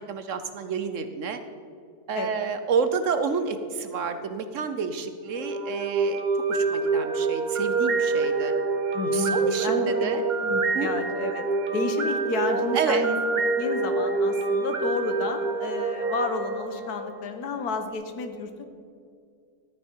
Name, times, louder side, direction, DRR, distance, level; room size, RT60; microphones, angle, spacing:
voice 1, 0.0-1.4 2.1-6.2 6.5-8.5 9.1-10.2 10.7-10.9 12.7-13.1, right 5 dB, 65° right, 9 dB, 1.0 m, -29 dB
sound 1, 5.3-17.4, right 3 dB, 35° right, 0.9 m, -26 dB
voice 2, 8.9-11.4 11.7-13.2 13.6-18.6, left 4 dB, 90° left, 6 dB, 1.5 m, -31 dB
13.5 x 9.0 x 4.5 m, 2.3 s
omnidirectional pair, 1.6 m